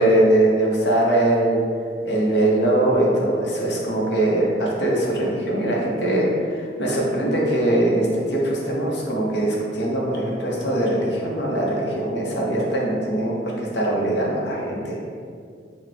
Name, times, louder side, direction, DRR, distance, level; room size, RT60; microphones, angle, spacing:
voice 1, 0.0-1.6 2.0-15.0, right 1 dB, 80° left, -3 dB, 0.9 m, -21 dB
5.8 x 2.3 x 3.4 m, 2.3 s
head